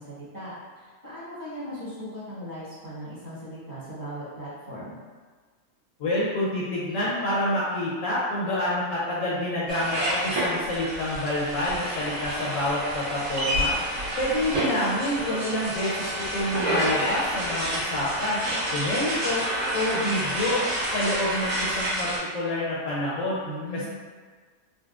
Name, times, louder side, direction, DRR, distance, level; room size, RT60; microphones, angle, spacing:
voice 1, 0.0-5.0 23.4-23.9, equal, 15° right, -11 dB, 0.9 m, -38 dB
voice 2, 6.0-13.7 14.2-18.4 18.7-19.4 19.7-20.6 20.9-23.4 23.7-23.9, left 1 dB, 65° left, -7 dB, 1.0 m, -27 dB
sound 1, 9.7-22.2, right 1 dB, 70° right, 1.3 m, -29 dB
3.9 x 2.2 x 2.4 m, 1.5 s
omnidirectional pair, 1.6 m